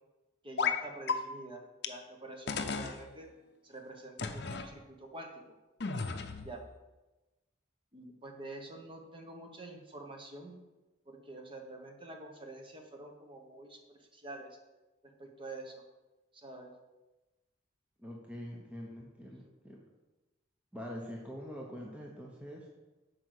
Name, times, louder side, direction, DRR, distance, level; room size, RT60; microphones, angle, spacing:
voice 1, 0.4-3.3 3.6-5.5 6.4-6.7 7.9-10.5 11.1-14.6 15.0-15.8 16.3-16.8, right 2 dB, 25° right, 3 dB, 1.2 m, -47 dB
sound 1, 0.6-0.8 1.1-1.2 1.8-1.9 2.5-3.0 4.2-4.7 5.8-6.5, left 5 dB, 55° left, 0.7 m, -33 dB
voice 2, 18.0-19.8 20.7-22.7, equal, 5° right, -2 dB, 0.8 m, -44 dB
8.3 x 4.8 x 6.6 m, 1.1 s
head